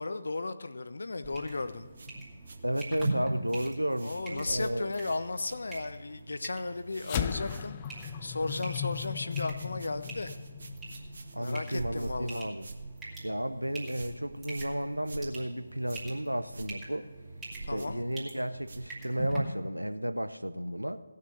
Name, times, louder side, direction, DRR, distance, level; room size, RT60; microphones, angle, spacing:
voice 1, 0.0-1.9 4.0-7.8 8.2-10.3 11.3-12.4 17.7-18.0, left 3 dB, 60° left, 11 dB, 0.8 m, -35 dB
sound 1, 1.2-19.4, right 2 dB, 10° right, 2.4 m, -42 dB
sound 2, 1.9-6.3 6.5-7.1 7.4-19.4, right 3 dB, 50° right, 1.3 m, -48 dB
voice 2, 2.6-4.9 11.3-12.6 13.2-17.1 17.7-21.0, right 1 dB, 90° right, 11 dB, 0.8 m, -33 dB
sound 3, 7.0-11.7, left 9 dB, 25° left, 0.4 m, -37 dB
17.0 x 6.5 x 6.7 m, 1.4 s
figure-of-eight pair, 150°, 0 cm